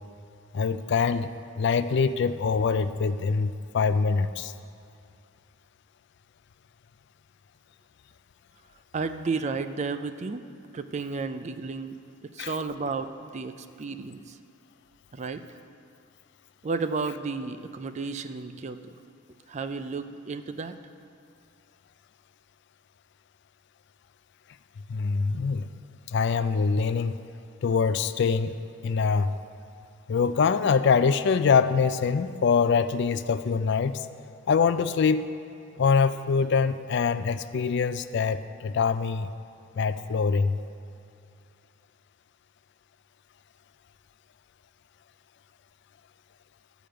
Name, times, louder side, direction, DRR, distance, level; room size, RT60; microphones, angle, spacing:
voice 1, 0.5-4.5 12.4-12.5 24.9-25.7 26.1-27.2 27.6-28.6 28.8-29.3 30.1-34.1 34.5-35.2 35.8-39.3 39.8-40.6, left 5 dB, 55° left, 12 dB, 0.4 m, -24 dB
voice 2, 8.9-10.4 10.7-14.4 15.1-15.4 16.6-19.0 19.5-20.7, right 4 dB, 35° right, 10 dB, 0.4 m, -33 dB
13.0 x 5.1 x 7.7 m, 2.5 s
head